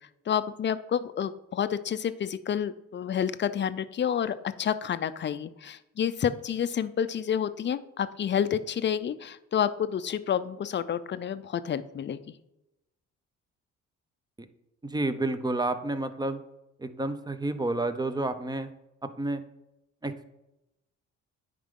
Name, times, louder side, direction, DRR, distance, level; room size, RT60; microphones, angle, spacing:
voice 1, 0.3-12.2, left 8 dB, 40° left, 14 dB, 0.5 m, -29 dB
voice 2, 14.8-16.4 16.8-18.7 19.0-19.4 20.0-20.3, right 2 dB, 15° right, 10 dB, 0.6 m, -30 dB
9.5 x 5.1 x 3.7 m, 0.93 s
cardioid pair, 90°, 30 cm